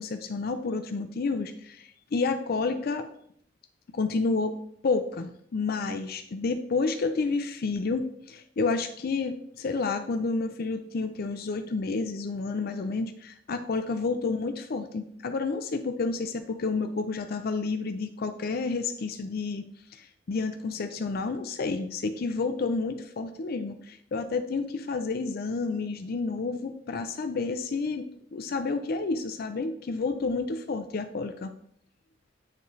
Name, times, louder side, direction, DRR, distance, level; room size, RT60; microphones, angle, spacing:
voice 1, 0.0-3.1 3.9-4.5 4.8-19.7 19.9-31.5, left 4 dB, 55° left, 8 dB, 0.4 m, -30 dB
9.3 x 3.1 x 3.9 m, 0.68 s
head